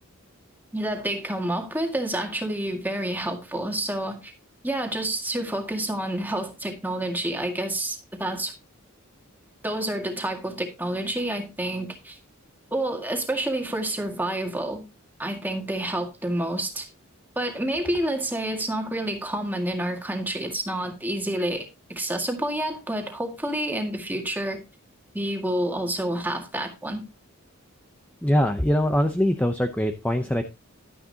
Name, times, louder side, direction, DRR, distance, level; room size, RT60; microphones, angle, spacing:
voice 1, 0.7-4.3 4.6-8.5 9.6-12.2 12.7-14.9 15.2-16.9 17.4-24.6 25.1-27.0, right 1 dB, 10° right, 1.9 m, -28 dB
voice 2, 28.2-30.4, equal, 5° left, 0.7 m, -22 dB
12.0 x 10.0 x 2.8 m
head